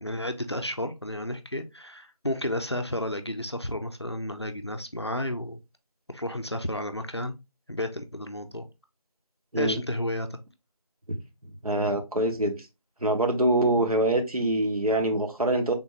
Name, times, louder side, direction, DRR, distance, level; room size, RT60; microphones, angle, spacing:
voice 1, 0.0-5.6 6.1-7.4 7.7-8.7 9.6-10.3, left 1 dB, 45° left, 0.5 m, -32 dB
voice 2, 11.6-12.6 13.0-15.7, right 1 dB, 75° right, 1.0 m, -24 dB
3.5 x 2.6 x 3.0 m
figure-of-eight pair, 180°, 19 cm